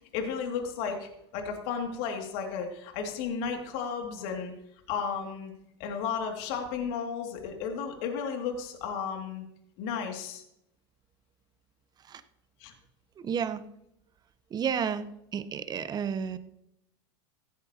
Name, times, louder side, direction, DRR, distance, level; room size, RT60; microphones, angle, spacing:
voice 1, 0.1-4.5 4.9-5.5 5.8-9.4 9.8-10.4 12.6-12.7, left 6 dB, 60° left, 3 dB, 2.6 m, -33 dB
voice 2, 13.2-13.6 14.5-16.4, right 7 dB, 30° right, 12 dB, 1.0 m, -31 dB
16.0 x 13.5 x 3.0 m, 0.79 s
hypercardioid pair, 95°, 14 cm